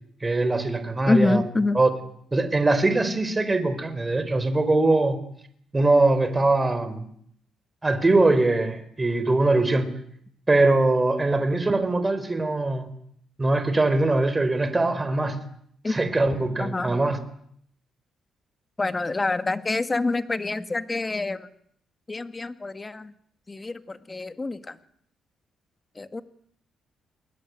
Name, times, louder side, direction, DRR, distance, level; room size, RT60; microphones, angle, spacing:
voice 1, 0.2-1.4 1.7-1.9 2.3-5.2 5.7-7.0 7.8-9.9 10.5-12.9 13.4-15.4 15.9-17.2, right 2 dB, 20° right, 10 dB, 4.5 m, -22 dB
voice 2, 1.1-1.8 15.8-16.0 16.6-17.0 18.8-21.5 22.1-23.1 23.5-24.8 26.0-26.2, left 3 dB, 25° left, 11 dB, 2.1 m, -26 dB
29.0 x 21.5 x 9.6 m, 0.67 s
cardioid pair, 90°, 0 cm